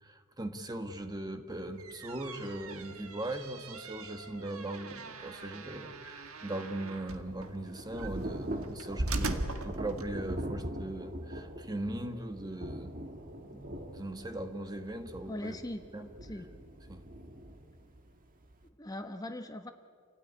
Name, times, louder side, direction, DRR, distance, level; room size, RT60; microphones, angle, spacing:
voice 1, 0.0-12.9 13.4-15.6 15.9-16.1 16.9-17.0, right 1 dB, 20° right, 7 dB, 1.4 m, -39 dB
sound 1, 1.6-10.5, right 2 dB, 65° right, 1.7 m, -40 dB
Thunder / Rain, 6.7-18.7, right 1 dB, 40° right, 1.8 m, -43 dB
voice 2, 15.3-15.8 16.2-16.5 18.8-19.7, left 1 dB, 15° left, 6 dB, 1.1 m, -40 dB
28.0 x 17.0 x 9.9 m, 2.1 s
head